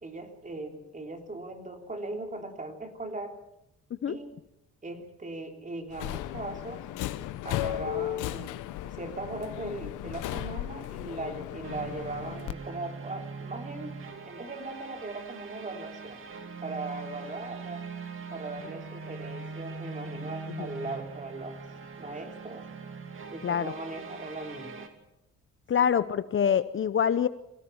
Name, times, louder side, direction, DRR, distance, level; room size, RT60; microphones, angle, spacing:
voice 1, 0.0-3.4 4.1-4.4 4.8-6.9 7.4-8.5 8.8-14.0 14.2-16.3 16.6-17.8 18.3-21.6 21.9-22.7 23.3-24.9 25.8-26.0, right 2 dB, 25° right, 4 dB, 3.5 m, -39 dB
Subway metro underground, 5.9-12.5, left 14 dB, 90° left, 1.0 m, -35 dB
sound 1, 11.6-24.9, right 4 dB, 45° right, 2.7 m, -42 dB
voice 2, 25.7-27.3, left 8 dB, 45° left, 14 dB, 0.7 m, -25 dB
22.5 x 16.5 x 7.1 m, 0.87 s
cardioid pair, 90°, 30 cm